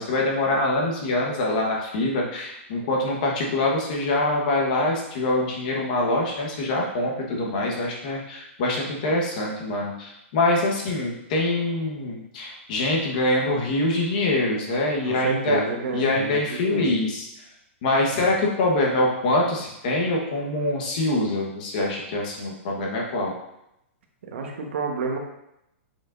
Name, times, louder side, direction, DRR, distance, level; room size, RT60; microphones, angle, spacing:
voice 1, 0.0-15.6 15.9-17.2 17.8-23.3, left 2 dB, 35° left, -1 dB, 1.2 m, -24 dB
voice 2, 15.0-17.0 24.2-25.2, right 4 dB, 65° right, 1 dB, 1.2 m, -30 dB
7.3 x 5.3 x 2.6 m, 0.82 s
hypercardioid pair, 180°, 7 cm